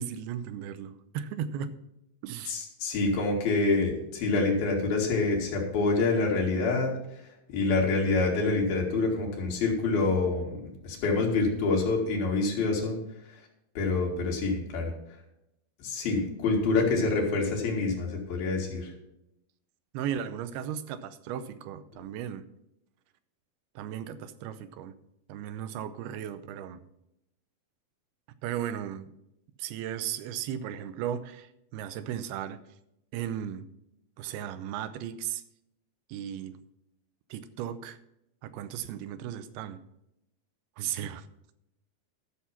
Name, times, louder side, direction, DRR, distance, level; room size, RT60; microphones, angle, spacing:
voice 1, 0.0-1.7 2.2-2.6 19.9-22.4 23.8-24.9 25.3-26.8 28.4-29.1 29.6-32.6 33.1-33.7 34.2-35.4 36.1-36.6 37.3-38.0 38.4-39.8 40.8-41.3, right 9 dB, 90° right, 12 dB, 2.7 m, -36 dB
voice 2, 2.5-6.9 7.5-10.6 10.8-13.0 13.8-14.9 15.8-18.9, left 3 dB, 70° left, -1 dB, 4.0 m, -26 dB
13.0 x 6.6 x 5.8 m, 0.85 s
omnidirectional pair, 4.5 m